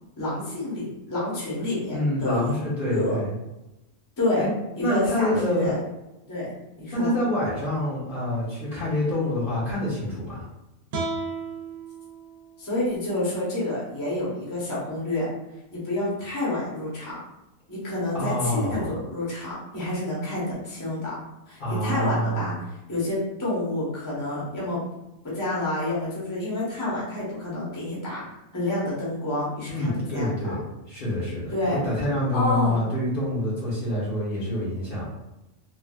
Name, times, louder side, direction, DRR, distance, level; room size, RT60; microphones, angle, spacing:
voice 1, 0.2-2.5 2.9-3.2 4.2-4.4 4.8-5.8 6.3-6.5 6.8-7.1 12.6-15.3 15.7-17.2 17.7-21.1 21.5-22.5 22.9-24.8 25.2-30.3 31.5-31.8 32.3-32.8, left 1 dB, 20° left, -7 dB, 0.8 m, -28 dB
voice 2, 1.9-3.3 4.4-4.5 4.8-5.7 6.9-10.4 18.1-18.9 21.6-22.5 29.7-30.6 30.9-35.0, left 1 dB, 45° left, -9 dB, 0.9 m, -26 dB
sound 1, 10.9-14.1, right 3 dB, 80° right, 1.0 m, -36 dB
3.3 x 2.3 x 2.3 m, 0.95 s
omnidirectional pair, 1.4 m